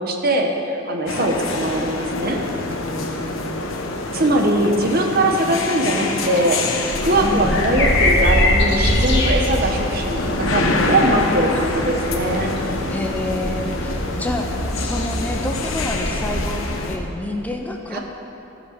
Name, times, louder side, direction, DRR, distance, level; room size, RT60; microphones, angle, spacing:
voice 1, 0.0-2.4 4.1-6.6 7.0-12.5 17.9-18.0, right 1 dB, 50° right, 3 dB, 1.0 m, -21 dB
sound 1, 1.1-17.0, left 2 dB, 80° left, 1.0 m, -26 dB
voice 2, 2.6-3.4 7.2-7.7 11.5-11.6 12.9-16.6 16.9-18.0, left 1 dB, 10° left, 2 dB, 0.6 m, -29 dB
sound 2, 6.9-16.8, left 1 dB, 60° left, 1.7 m, -23 dB
14.0 x 5.2 x 6.6 m, 2.9 s
head